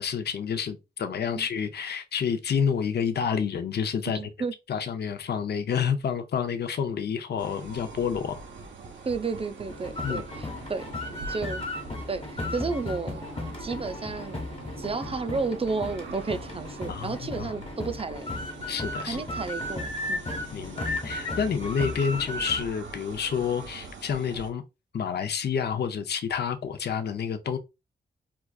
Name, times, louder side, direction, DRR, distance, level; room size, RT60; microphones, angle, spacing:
voice 1, 0.0-4.2 4.7-8.4 10.0-10.2 16.9-17.5 18.7-19.2 20.5-24.6 24.9-27.6, left 7 dB, 65° left, 0.5 m, -29 dB
voice 2, 4.1-4.5 9.1-10.8 11.3-11.6 12.1-13.2 13.6-14.4 14.8-18.3 19.1-20.2, right 4 dB, 30° right, 0.5 m, -32 dB
sound 1, 7.4-24.5, right 3 dB, 85° right, 0.8 m, -43 dB
sound 2, 9.7-22.6, left 2 dB, 30° left, 1.1 m, -35 dB
4.6 x 2.4 x 2.3 m
cardioid pair, 75°, 18 cm